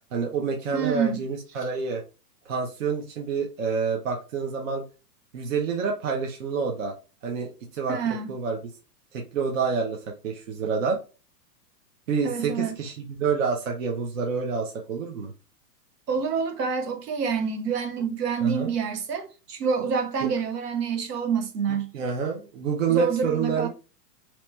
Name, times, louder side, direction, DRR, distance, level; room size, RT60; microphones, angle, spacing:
voice 1, 0.1-2.0 2.4-4.8 5.3-6.9 7.2-8.0 8.3-8.6 9.1-11.0 12.1-15.3 18.4-18.7 21.9-23.7, right 5 dB, 50° right, 0.8 m, -28 dB
voice 2, 0.7-1.2 7.9-8.3 12.2-12.7 16.1-21.9 22.9-23.7, right 6 dB, 70° right, 1.2 m, -27 dB
3.0 x 2.9 x 3.2 m
hypercardioid pair, 170°, 49 cm